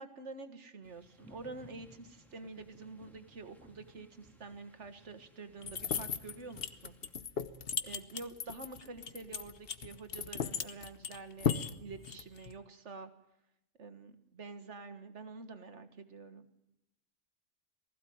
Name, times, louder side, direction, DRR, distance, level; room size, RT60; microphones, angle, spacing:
voice 1, 0.0-7.0 7.8-13.1 13.8-16.5, right 3 dB, 65° right, 9 dB, 2.0 m, -48 dB
sound 1, 0.8-7.1, equal, ahead, 2.1 m, -60 dB
sound 2, 5.6-12.5, left 7 dB, 50° left, 1.1 m, -36 dB
20.0 x 15.5 x 9.4 m, 0.84 s
omnidirectional pair, 1.3 m